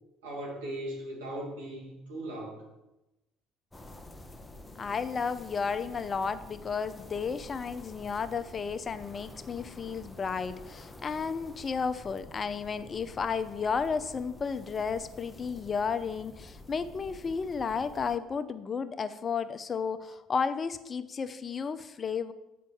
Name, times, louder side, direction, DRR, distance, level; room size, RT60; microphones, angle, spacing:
voice 1, 0.2-2.6, right 1 dB, 90° right, -2 dB, 2.7 m, -38 dB
sound 1, 3.7-18.2, left 1 dB, 15° left, 0.9 m, -49 dB
voice 2, 4.8-22.3, left 5 dB, 35° left, 12 dB, 0.7 m, -33 dB
7.4 x 5.7 x 7.1 m, 0.97 s
hypercardioid pair, 70°, 0 cm